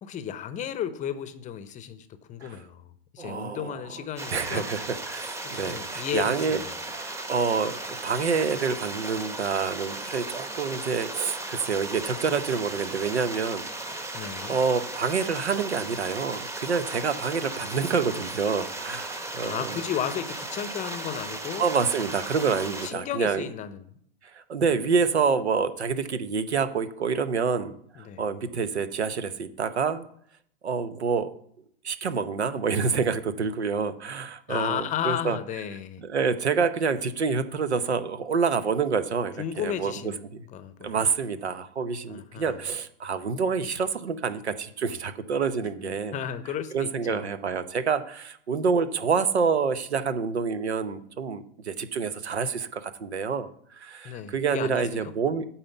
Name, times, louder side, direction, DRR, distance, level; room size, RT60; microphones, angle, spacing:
voice 1, 0.0-2.9 3.1-4.7 5.4-6.8 14.1-14.6 19.4-21.7 22.8-23.9 28.0-28.2 34.5-36.0 39.4-41.0 42.1-42.6 45.8-47.5 54.0-55.1, left 9 dB, 25° left, 12 dB, 0.7 m, -34 dB
voice 2, 3.2-3.7 4.3-6.6 7.0-14.0 14.5-19.8 21.6-23.5 24.3-30.0 30.6-31.3 31.8-35.4 36.0-39.9 40.3-40.4 40.8-46.1 46.7-55.5, right 5 dB, 90° right, 13 dB, 0.9 m, -27 dB
sound 1, 4.2-22.9, right 2 dB, 10° right, 0.9 m, -36 dB
8.9 x 4.3 x 7.0 m, 0.67 s
hypercardioid pair, 105°, 32 cm